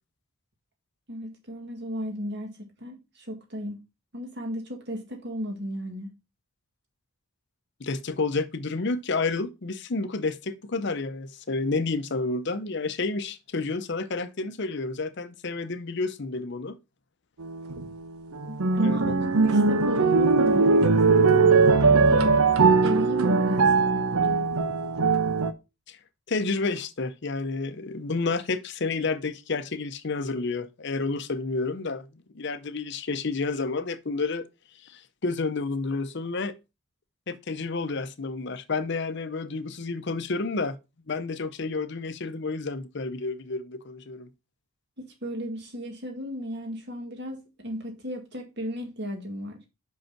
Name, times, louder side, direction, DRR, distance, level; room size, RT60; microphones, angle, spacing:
voice 1, 1.1-3.8 4.1-6.1 18.4-24.5 45.0-49.6, equal, 50° right, 2.2 m, -35 dB
voice 2, 7.8-16.8 18.6-19.1 25.9-26.0 26.3-34.4 34.8-36.5 37.3-40.8 41.1-44.3, left 3 dB, 50° left, 0.7 m, -30 dB
sound 1, 17.4-17.8 18.4-25.5, right 4 dB, 80° right, 0.8 m, -20 dB
5.6 x 5.3 x 5.7 m
head